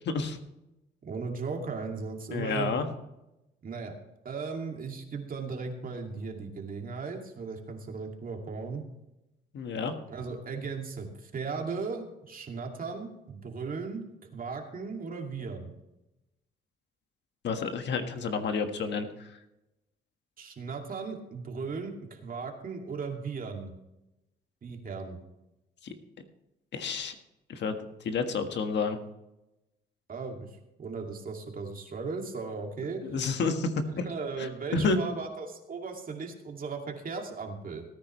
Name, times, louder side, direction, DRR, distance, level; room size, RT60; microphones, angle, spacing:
voice 1, 0.0-0.4 2.3-2.9 9.5-9.9 17.4-19.3 25.8-25.9 26.7-27.1 27.5-27.7 28.0-29.0 33.1-34.1 34.4-34.5 34.7-35.0, left 4 dB, 60° left, 6 dB, 1.6 m, -29 dB
voice 2, 1.0-2.8 3.6-3.9 4.2-8.8 10.1-14.0 14.3-15.7 20.4-23.7 24.6-25.2 30.1-30.5 30.8-33.0 34.0-37.8, right 4 dB, 45° right, 2 dB, 2.5 m, -37 dB
18.0 x 9.9 x 3.2 m, 0.92 s
cardioid pair, 90°, 20 cm